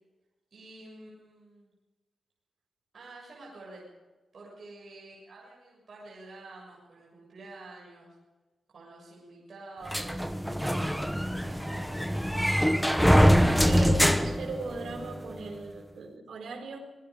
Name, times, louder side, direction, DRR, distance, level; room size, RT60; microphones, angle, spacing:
voice 1, 0.5-1.7 2.9-3.8 4.3-8.1 8.7-11.1 11.4-12.6, right 2 dB, 45° right, -4 dB, 7.2 m, -48 dB
sound 1, 9.9-15.2, equal, ahead, 1.0 m, -24 dB
voice 2, 13.6-16.8, right 3 dB, 80° right, 3 dB, 4.9 m, -39 dB
26.5 x 21.0 x 5.3 m, 1.2 s
wide cardioid pair, 175°, 0 cm